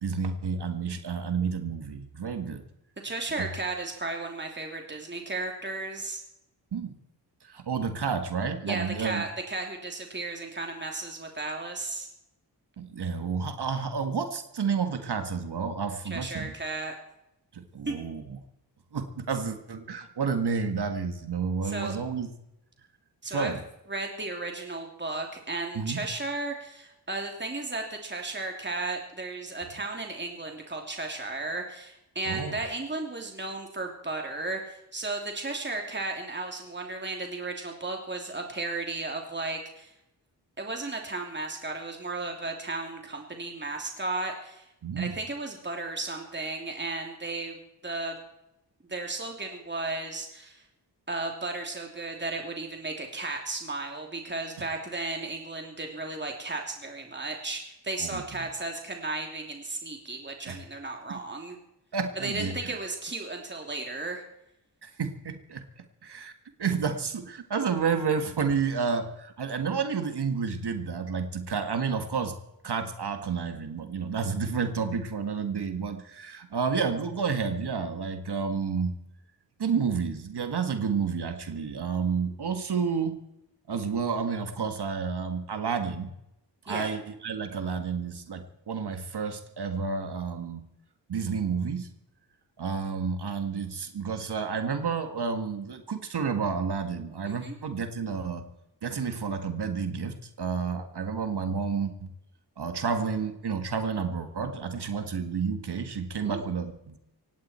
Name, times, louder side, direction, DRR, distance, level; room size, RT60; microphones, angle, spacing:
voice 1, 0.0-2.6 3.4-3.5 6.7-7.0 7.4-9.3 12.8-16.5 17.5-18.4 18.9-22.3 23.2-23.6 25.8-26.0 32.3-32.6 44.8-45.2 58.0-58.2 60.5-60.6 61.1-61.2 61.9-62.8 64.8-65.6 66.0-66.3 66.6-72.3 72.6-79.0 79.6-83.2 83.7-86.1 86.7-90.6 91.1-91.9 92.6-98.4 98.8-102.1 102.6-107.0, right 5 dB, 65° right, 7 dB, 1.8 m, -30 dB
voice 2, 3.0-6.2 8.7-12.1 16.1-16.9 17.9-18.0 21.6-22.0 23.2-23.5 23.9-39.9 40.6-44.7 45.0-47.6 47.8-48.2 48.9-50.6 51.1-61.6 62.1-64.2 86.7-86.9 97.3-97.6 106.2-106.5, right 3 dB, 25° right, 2 dB, 3.0 m, -34 dB
18.0 x 16.5 x 4.4 m, 0.86 s
cardioid pair, 60°, 42 cm